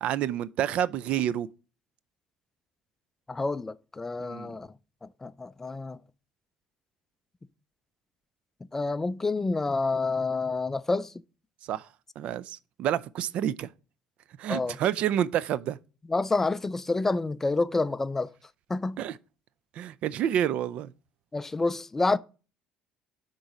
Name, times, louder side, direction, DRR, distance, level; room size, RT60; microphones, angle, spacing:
voice 1, 0.0-1.5 4.2-4.5 11.7-11.9 12.2-13.7 14.4-15.8 19.0-19.2 19.8-20.9, right 10 dB, 60° right, 0.4 m, -28 dB
voice 2, 3.3-4.7 5.0-6.0 8.7-11.1 14.5-14.8 16.1-18.3 18.7-19.0 21.3-22.2, left 3 dB, 15° left, 0.3 m, -28 dB
6.3 x 3.9 x 5.9 m
cardioid pair, 105°, 2 cm